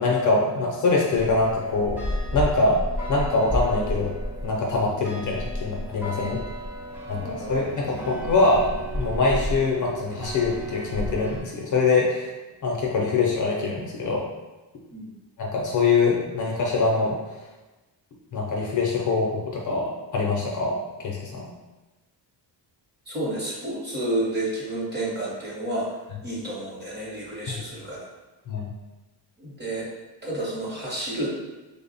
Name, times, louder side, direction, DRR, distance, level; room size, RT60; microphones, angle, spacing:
voice 1, 0.0-2.0 2.3-2.8 3.1-4.1 4.4-6.4 7.1-12.3 12.6-14.3 15.4-17.2 18.3-21.5 28.5-28.7, left 3 dB, 45° left, -2 dB, 0.5 m, -24 dB
sound 1, 1.1-11.4, equal, 5° right, 0.3 m, -32 dB
voice 2, 7.1-7.5 14.9-15.1 23.1-25.9 26.2-28.0 29.4-29.9 30.2-31.3, right 1 dB, 25° right, -6 dB, 0.8 m, -30 dB
3.3 x 2.0 x 3.9 m, 1.1 s
wide cardioid pair, 175°, 42 cm